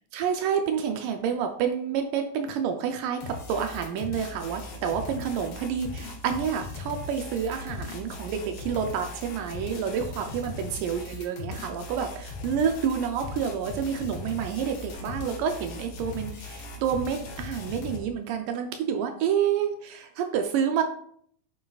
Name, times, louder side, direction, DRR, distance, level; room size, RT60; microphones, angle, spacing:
voice 1, 0.1-20.8, right 7 dB, 85° right, 5 dB, 1.9 m, -29 dB
sound 1, 3.2-18.0, left 3 dB, 85° left, 3.4 m, -39 dB
9.7 x 5.6 x 2.3 m, 0.65 s
omnidirectional pair, 4.3 m